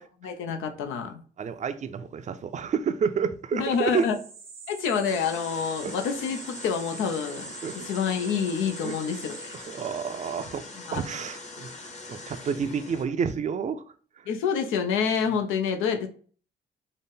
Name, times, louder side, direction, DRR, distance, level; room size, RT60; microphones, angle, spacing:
voice 1, 0.2-1.1 3.5-4.2 4.7-7.5 7.7-9.5 10.9-11.0 14.3-16.1, left 6 dB, 90° left, 5 dB, 0.5 m, -27 dB
voice 2, 1.4-4.1 5.8-5.9 7.6-7.8 8.8-9.0 9.5-10.6 10.9-11.7 12.1-13.8, right 6 dB, 35° right, 10 dB, 0.4 m, -29 dB
sound 1, 3.6-10.2, right 4 dB, 85° right, 0.9 m, -44 dB
sound 2, 5.1-13.1, left 3 dB, 35° left, 0.9 m, -42 dB
4.0 x 2.0 x 3.6 m, 0.43 s
cardioid pair, 90°, 20 cm